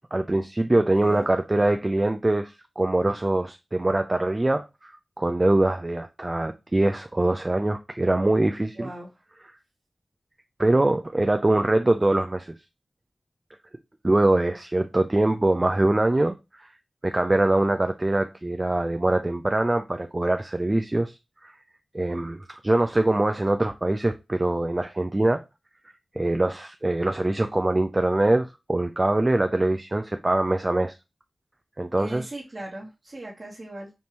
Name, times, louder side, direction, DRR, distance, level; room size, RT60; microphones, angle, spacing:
voice 1, 0.1-4.9 5.2-8.9 10.6-12.5 14.0-16.7 17.0-21.2 21.4-21.5 21.9-25.4 26.2-30.9 31.8-32.3, right 2 dB, 30° right, 0.4 m, -23 dB
voice 2, 8.7-9.1 31.9-33.9, right 1 dB, 55° right, 1.4 m, -38 dB
5.3 x 2.7 x 3.0 m
cardioid pair, 45°, 0 cm